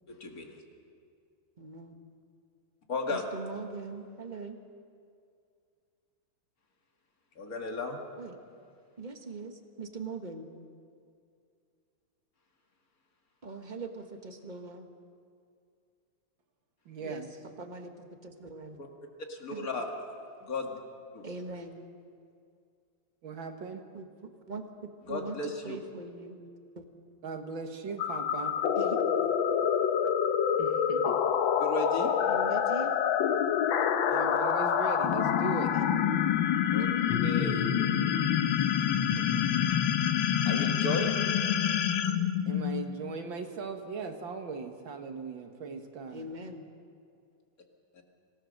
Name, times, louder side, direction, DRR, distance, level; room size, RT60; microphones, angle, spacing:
voice 1, 0.1-0.6 2.9-3.3 7.4-8.0 18.8-18.9 19.3-19.8 20.4-20.8 21.1-21.3 25.1-25.8 31.6-32.3 36.7-36.9 37.2-37.7 40.4-41.1 47.9-48.0, left 2 dB, 45° left, 2 dB, 2.4 m, -35 dB
voice 2, 1.6-2.0 3.1-4.6 8.1-8.4 9.0-10.5 13.4-14.8 17.0-17.3 17.6-18.8 19.5-19.7 21.2-21.9 23.9-24.1 24.5-26.4 26.7-26.8 28.7-29.0 32.3-32.9 35.5-36.0 46.1-46.7, right 3 dB, 25° right, 5 dB, 1.4 m, -41 dB
voice 3, 16.9-17.3 23.2-23.9 27.2-28.5 30.6-31.2 34.1-35.7 39.0-39.5 42.5-46.3, right 4 dB, 70° right, 5 dB, 2.2 m, -39 dB
sound 1, 28.0-43.1, left 8 dB, 75° left, 1.6 m, -27 dB
25.5 x 17.5 x 6.5 m, 2.4 s
omnidirectional pair, 2.2 m